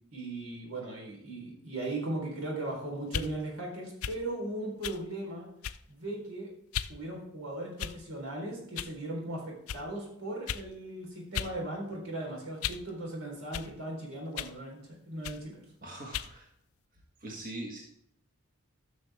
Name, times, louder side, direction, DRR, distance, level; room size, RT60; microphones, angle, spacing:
voice 1, 0.1-5.5 5.9-6.5 6.9-15.6, right 1 dB, 80° right, -1 dB, 4.0 m, -38 dB
sound 1, 3.0-3.3 4.0-4.2 4.8-5.0 5.6-5.9 6.7-7.0 7.8-8.2 8.8-9.0 9.7-9.8 10.5-10.7 11.3-11.6 11.9-12.9 13.5-13.7 14.4-14.6 15.2-15.4 16.1-16.3, left 9 dB, 90° left, 0.5 m, -36 dB
voice 2, 15.8-16.5 17.2-17.8, right 1 dB, 40° right, -2 dB, 1.6 m, -41 dB
13.0 x 6.5 x 3.5 m, 0.74 s
head